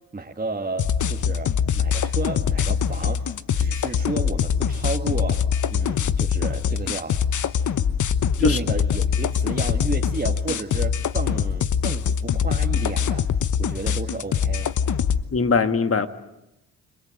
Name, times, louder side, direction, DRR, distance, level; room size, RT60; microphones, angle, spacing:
voice 1, 0.1-3.3 3.6-7.2 8.4-13.3 13.6-14.7, right 3 dB, 25° right, 1.9 m, -32 dB
sound 1, 0.8-15.2, left 7 dB, 55° left, 1.1 m, -23 dB
voice 2, 15.3-16.1, left 4 dB, 40° left, 1.8 m, -20 dB
29.0 x 22.5 x 8.0 m
supercardioid pair, 50°, 36 cm